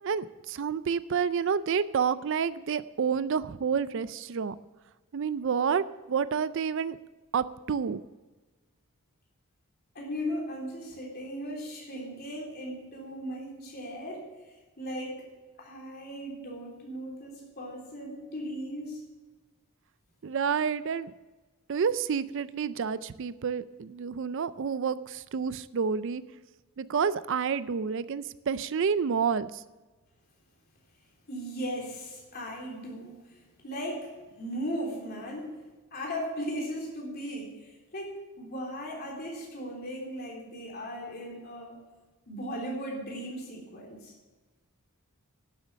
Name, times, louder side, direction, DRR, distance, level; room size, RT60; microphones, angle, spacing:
voice 1, 0.0-4.6 5.1-7.0 7.3-8.0 20.2-21.1 21.7-26.2 26.8-29.6, right 6 dB, 55° right, 16 dB, 0.4 m, -29 dB
voice 2, 10.0-14.3 14.8-15.2 15.6-19.0 31.3-34.1 34.4-35.5 35.9-37.6 37.9-41.8 42.3-44.1, equal, 45° left, -2 dB, 3.5 m, -37 dB
11.5 x 8.1 x 6.3 m, 1.2 s
head